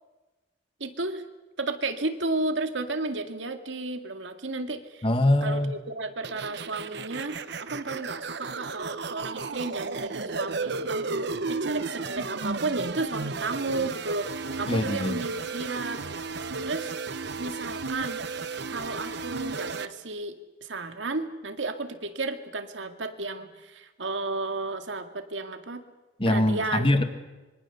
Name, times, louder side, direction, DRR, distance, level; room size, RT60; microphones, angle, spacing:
voice 1, 0.8-1.2 1.6-5.1 5.4-14.3 14.6-16.0 16.6-16.9 17.4-18.2 18.7-25.8 26.3-26.9, right 3 dB, 85° right, 7 dB, 2.1 m, -33 dB
voice 2, 5.0-5.7 14.7-15.3 26.2-27.0, left 1 dB, 30° left, 9 dB, 1.7 m, -23 dB
sound 1, 6.2-19.9, right 4 dB, 65° right, 1.0 m, -34 dB
26.0 x 23.5 x 6.9 m, 1.1 s
head